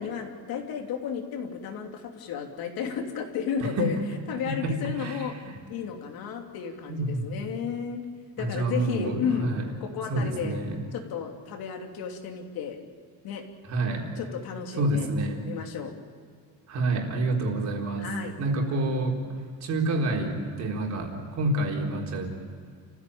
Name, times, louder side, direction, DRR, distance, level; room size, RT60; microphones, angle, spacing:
voice 1, 0.0-4.0 4.3-5.3 5.7-8.0 8.4-9.5 9.8-10.6 10.9-12.8 13.2-13.4 14.2-15.1 15.4-15.9 18.0-18.3, left 7 dB, 65° left, 3 dB, 3.0 m, -33 dB
voice 2, 3.6-3.9 4.5-5.2 5.5-5.6 6.9-7.2 8.4-9.7 10.1-10.8 13.7-14.1 14.7-15.4 16.7-18.1 18.4-19.2 19.6-22.3, right 2 dB, 45° right, 0 dB, 4.1 m, -28 dB
30.0 x 15.5 x 8.7 m, 2.2 s
cardioid pair, 175°, 38 cm